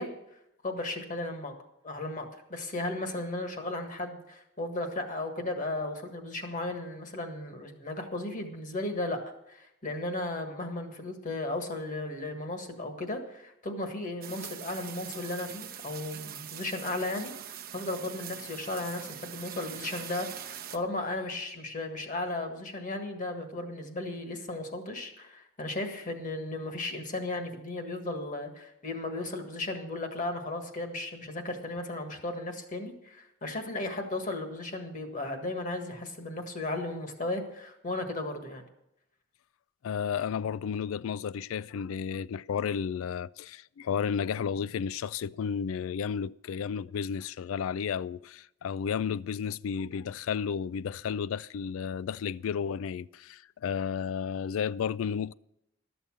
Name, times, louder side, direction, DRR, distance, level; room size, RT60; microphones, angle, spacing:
voice 1, 0.0-1.5 1.8-9.2 9.5-38.6, left 2 dB, 40° left, 1.6 m, -35 dB
sound 1, 14.2-20.8, right 10 dB, 50° right, 0.8 m, -43 dB
voice 2, 39.8-55.3, left 7 dB, 80° left, 0.3 m, -32 dB
12.5 x 6.9 x 7.3 m
head